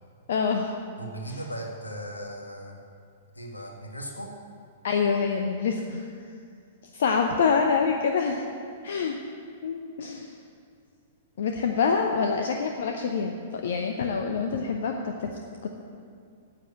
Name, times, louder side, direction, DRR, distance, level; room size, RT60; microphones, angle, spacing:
voice 1, 0.3-0.7 1.3-1.4 4.8-6.1 6.9-8.5 8.8-9.2 9.6-10.3 11.4-15.3 15.6-15.7, left 5 dB, 55° left, 3 dB, 0.8 m, -26 dB
voice 2, 1.0-2.8 3.3-4.3, right 1 dB, 80° left, 1 dB, 1.8 m, -37 dB
9.5 x 7.9 x 8.6 m, 2.3 s
figure-of-eight pair, 105°, 0 cm